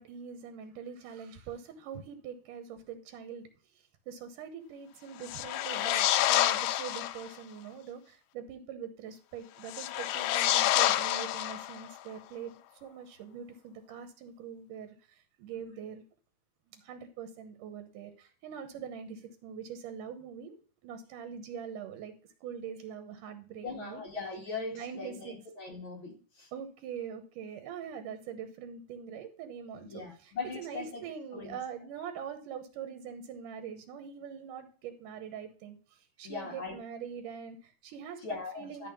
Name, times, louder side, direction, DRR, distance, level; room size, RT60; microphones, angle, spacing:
voice 1, 0.0-3.5 4.1-16.0 16.7-22.1 22.4-24.0 24.7-25.4 26.5-38.2 38.6-38.9, right 7 dB, 85° right, 2.7 m, -43 dB
sound 1, 5.2-7.3 9.6-12.0, left 13 dB, 75° left, 1.7 m, -28 dB
voice 2, 23.6-26.5 29.8-31.0 31.3-31.6 36.2-36.8 38.2-38.9, left 4 dB, 40° left, 2.6 m, -40 dB
12.5 x 4.2 x 5.3 m
omnidirectional pair, 3.7 m